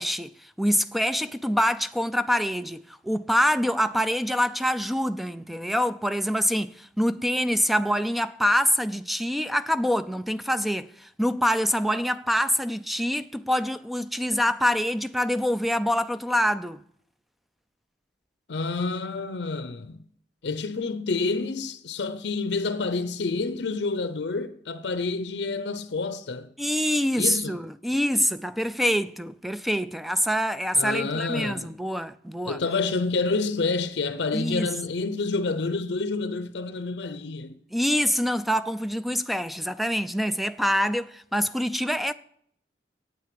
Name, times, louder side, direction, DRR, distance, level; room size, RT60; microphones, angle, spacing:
voice 1, 0.0-16.8 26.6-32.6 34.3-34.7 37.7-42.1, equal, ahead, 0.4 m, -25 dB
voice 2, 18.5-20.0 20.4-26.5 27.2-27.6 30.7-31.8 32.4-37.6, left 3 dB, 75° left, 0.6 m, -28 dB
9.0 x 8.7 x 7.6 m
head